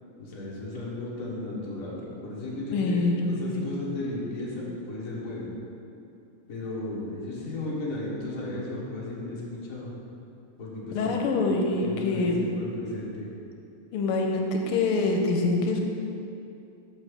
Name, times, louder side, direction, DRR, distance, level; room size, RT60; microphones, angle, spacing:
voice 1, 0.2-5.5 6.5-9.9 10.6-11.2 11.7-13.3, left 2 dB, 45° left, -5 dB, 1.6 m, -35 dB
voice 2, 2.7-3.6 10.9-12.3 13.9-15.8, left 3 dB, 85° left, 2 dB, 1.6 m, -25 dB
5.9 x 5.3 x 6.4 m, 2.6 s
omnidirectional pair, 2.4 m